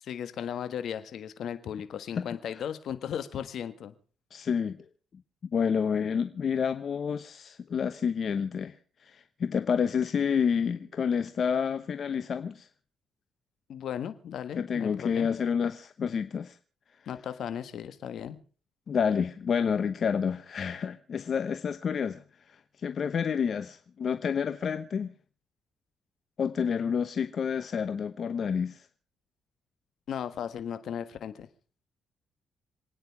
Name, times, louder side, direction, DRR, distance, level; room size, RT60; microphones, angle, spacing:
voice 1, 0.0-3.9 13.7-15.3 17.1-18.4 30.1-31.5, left 9 dB, 65° left, 11 dB, 1.5 m, -36 dB
voice 2, 4.3-4.8 5.5-8.7 9.0-12.7 14.6-16.6 18.9-25.1 26.4-28.9, left 7 dB, 50° left, 11 dB, 0.9 m, -29 dB
27.0 x 9.6 x 4.7 m, 0.39 s
cardioid pair, 90°, 0 cm